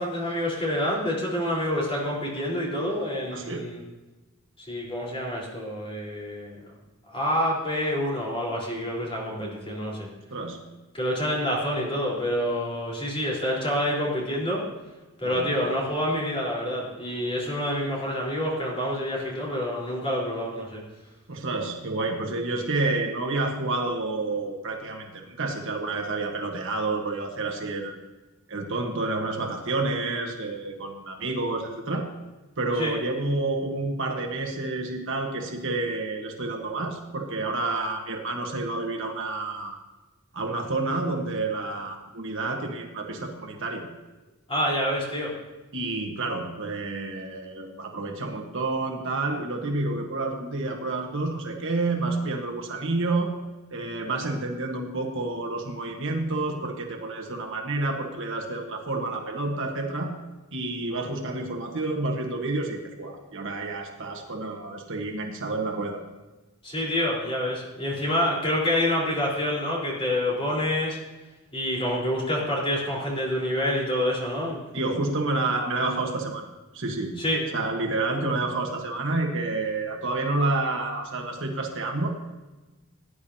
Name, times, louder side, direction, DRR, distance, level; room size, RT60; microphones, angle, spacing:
voice 1, 0.0-3.8 4.6-6.6 7.1-10.1 10.9-14.7 15.2-20.8 32.8-33.0 44.5-45.4 66.6-71.0 71.5-74.6 77.2-77.4, left 1 dB, 25° left, -4 dB, 4.1 m, -27 dB
voice 2, 3.3-3.6 10.3-10.6 15.2-15.5 21.3-28.0 28.5-32.1 32.6-39.8 40.3-43.9 45.7-53.3 53.7-60.1 60.5-66.0 74.7-77.1 77.5-82.1, right 2 dB, 60° right, 2 dB, 1.4 m, -29 dB
17.5 x 10.5 x 2.8 m, 1.1 s
head